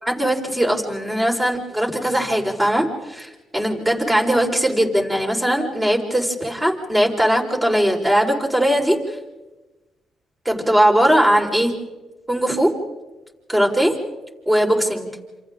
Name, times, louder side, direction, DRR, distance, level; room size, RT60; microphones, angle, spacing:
voice 1, 0.0-9.0 10.4-11.8 12.3-12.7 13.5-14.0 14.5-15.1, equal, 15° right, 0 dB, 4.8 m, -19 dB
28.0 x 27.5 x 3.8 m, 1.1 s
cardioid pair, 90°, 0 cm